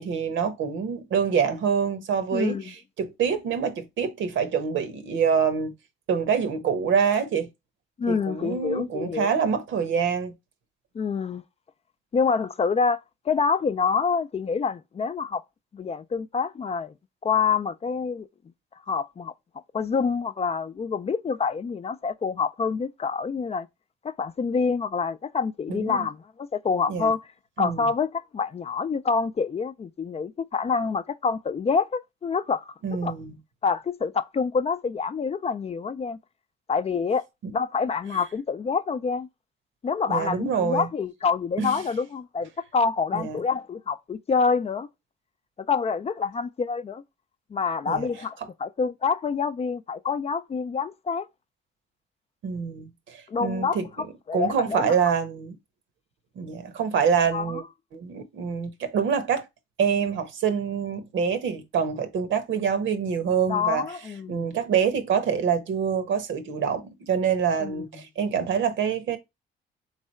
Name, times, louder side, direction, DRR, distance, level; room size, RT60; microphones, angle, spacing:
voice 1, 0.0-5.7 6.1-7.5 8.1-10.3 25.7-26.1 26.9-27.1 27.6-27.9 32.8-33.4 40.1-40.9 41.6-41.8 43.1-43.4 47.9-48.1 52.4-54.1 54.3-55.5 56.4-57.6 57.9-59.4 59.8-63.9 64.3-69.2, right 6 dB, 75° right, 1.0 m, -26 dB
voice 2, 2.3-2.6 8.0-9.3 10.9-11.4 12.1-13.0 13.3-15.4 15.7-16.9 17.2-18.3 18.9-19.3 19.7-23.7 24.0-27.2 27.6-32.7 33.0-33.1 33.6-36.2 36.7-37.2 37.5-39.3 39.8-44.9 45.7-47.0 47.5-51.3 53.3-53.8 54.3-54.9 57.3-57.6 63.5-64.5 67.6-67.8, left 5 dB, 30° left, 0.4 m, -27 dB
3.6 x 3.3 x 4.3 m
cardioid pair, 90°, 20 cm